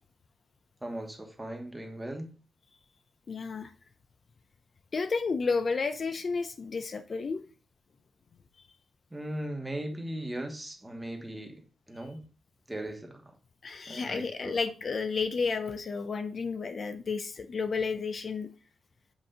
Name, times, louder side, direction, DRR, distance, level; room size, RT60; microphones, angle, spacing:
voice 1, 0.8-2.3 9.1-11.5 11.9-12.2 12.7-13.2 13.9-14.5, right 1 dB, 10° right, 3 dB, 1.3 m, -38 dB
voice 2, 3.3-3.7 4.9-7.4 13.6-18.5, left 4 dB, 45° left, 9 dB, 0.5 m, -31 dB
8.0 x 2.7 x 4.9 m, 0.38 s
cardioid pair, 110°, 0 cm